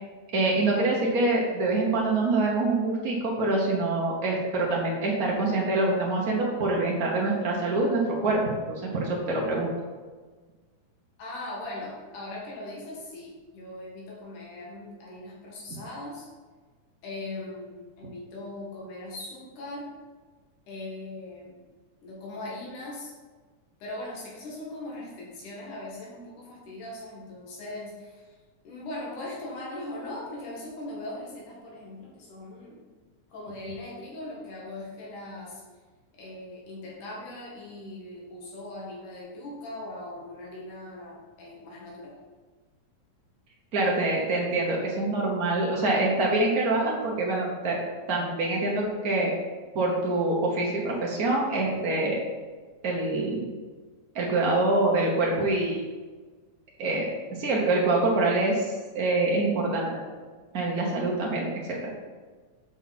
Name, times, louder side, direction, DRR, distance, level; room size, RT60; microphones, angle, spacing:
voice 1, 0.3-8.4 8.7-9.7 43.7-47.8 48.1-49.3 49.7-52.2 52.8-53.4 54.1-55.8 56.8-57.1 57.4-60.0 60.5-61.8, right 2 dB, 75° right, -3 dB, 0.8 m, -25 dB
voice 2, 11.2-16.3 17.0-19.9 20.7-21.6 22.0-23.1 23.8-28.4 28.6-32.8 33.3-35.6 36.1-42.2, left 2 dB, 85° left, -4 dB, 3.3 m, -40 dB
8.0 x 5.7 x 4.1 m, 1.4 s
omnidirectional pair, 3.5 m